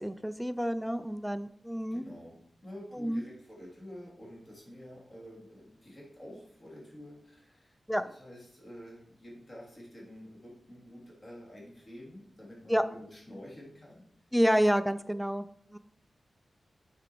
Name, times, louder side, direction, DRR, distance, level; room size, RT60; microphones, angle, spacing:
voice 1, 0.0-2.1 2.9-3.2 7.9-8.0 12.7-12.8 14.3-15.5 15.7-15.8, equal, ahead, 12 dB, 0.4 m, -28 dB
voice 2, 1.9-14.0, equal, 35° left, -4 dB, 3.1 m, -49 dB
8.4 x 5.0 x 4.6 m, 0.70 s
wide cardioid pair, 120°, 0 cm